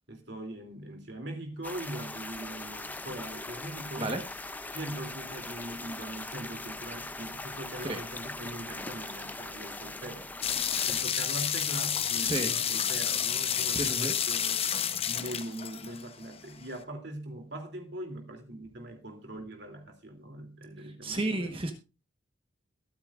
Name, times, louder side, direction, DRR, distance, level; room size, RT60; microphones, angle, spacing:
voice 1, 0.1-4.2 4.7-10.3 10.9-14.6 15.0-21.5, right 1 dB, 55° right, 3.0 m, -41 dB
sound 1, 1.6-11.0, left 2 dB, 10° left, 0.5 m, -41 dB
sound 2, 10.4-16.3, left 8 dB, 30° left, 0.9 m, -30 dB
voice 2, 12.2-12.5 13.7-14.1 20.8-21.7, right 2 dB, 25° right, 1.3 m, -32 dB
22.5 x 8.7 x 2.5 m
head